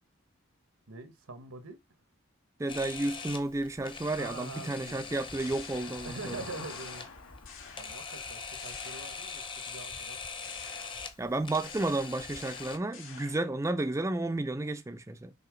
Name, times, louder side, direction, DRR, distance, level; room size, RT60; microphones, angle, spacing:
voice 1, 0.9-1.8 4.2-5.1 6.0-7.1 7.8-10.2 10.4-10.6, right 3 dB, 90° right, 1.2 m, -44 dB
voice 2, 2.6-6.4 11.2-15.3, right 2 dB, 15° right, 0.4 m, -32 dB
Camera, 2.7-12.8, left 5 dB, 25° left, 0.7 m, -42 dB
Motor vehicle (road), 4.6-12.2, left 3 dB, 90° left, 1.2 m, -53 dB
sound 1, 5.1-6.4 6.7-8.2 8.6-9.6 10.4-13.6, left 6 dB, 65° left, 2.1 m, -51 dB
5.6 x 3.4 x 4.9 m
head